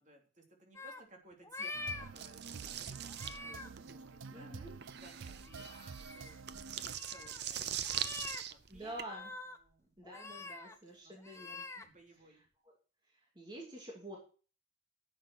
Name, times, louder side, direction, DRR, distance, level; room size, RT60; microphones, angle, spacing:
voice 1, 0.0-4.5 4.9-8.9 9.5-10.0 10.8-11.6 11.8-12.4, right 2 dB, 40° right, 2 dB, 3.1 m, -60 dB
sound 1, 0.7-1.0 1.4-2.1 3.1-3.7 5.3-7.4 7.8-8.4 8.8-9.6 10.0-10.7 11.2-11.8, left 3 dB, 15° left, 1.0 m, -46 dB
sound 2, 1.7-7.0, right 5 dB, 80° right, 0.5 m, -49 dB
sound 3, 2.2-9.0, right 10 dB, 55° right, 0.8 m, -42 dB
voice 2, 4.3-4.8 8.7-9.3 10.0-11.8 12.6-12.7 13.0-14.2, right 1 dB, 20° right, -1 dB, 2.5 m, -48 dB
11.0 x 7.7 x 6.2 m, 0.37 s
head